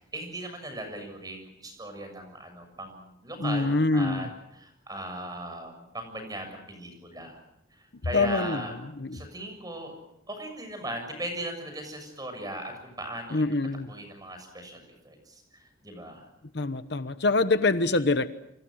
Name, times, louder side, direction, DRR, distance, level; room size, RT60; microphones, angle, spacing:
voice 1, 0.0-4.3 4.6-7.4 7.8-8.7 9.1-10.0 10.3-13.4 13.9-16.3, right 1 dB, 20° right, 6 dB, 6.9 m, -38 dB
voice 2, 3.4-4.3 8.1-8.7 9.0-9.2 13.3-13.9 16.5-18.3, left 2 dB, 60° left, 12 dB, 1.0 m, -25 dB
29.0 x 25.5 x 6.4 m, 0.80 s
head